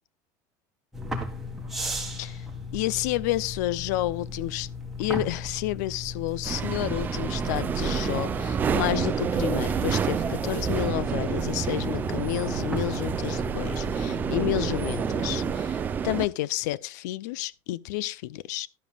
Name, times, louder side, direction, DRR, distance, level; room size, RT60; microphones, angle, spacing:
sound 1, 0.9-15.6, left 2 dB, 5° right, 1.8 m, -37 dB
voice 1, 2.1-2.4 2.7-4.7 5.0-18.7, left 15 dB, 85° left, 0.6 m, -30 dB
sound 2, 6.4-16.3, right 7 dB, 20° right, 0.6 m, -28 dB
12.5 x 11.0 x 2.4 m
cardioid pair, 170°, 9 cm